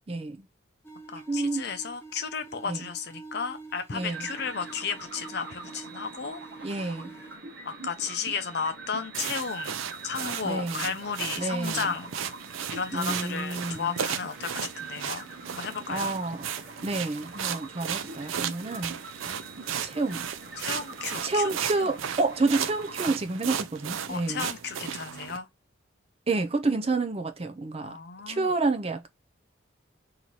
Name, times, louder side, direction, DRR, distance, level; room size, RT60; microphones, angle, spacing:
voice 1, 0.1-0.5 1.3-1.7 2.7-2.8 3.9-4.3 6.6-7.1 10.4-10.9 11.4-11.9 12.9-14.0 15.9-16.5 16.8-19.0 19.8-20.3 21.2-24.4 26.3-28.0 28.3-29.1, right 3 dB, 30° right, 0.5 m, -29 dB
sound 1, 0.8-7.4, right 3 dB, 10° left, 0.7 m, -47 dB
voice 2, 1.1-6.9 7.6-12.1 12.7-16.1 19.2-19.4 20.6-21.5 21.8-21.9 24.1-25.5 27.8-28.5, left 5 dB, 55° left, 0.6 m, -34 dB
sound 2, 4.0-23.1, right 3 dB, 55° right, 1.1 m, -44 dB
sound 3, 9.1-25.4, right 8 dB, 85° right, 0.5 m, -35 dB
3.0 x 2.8 x 3.9 m
head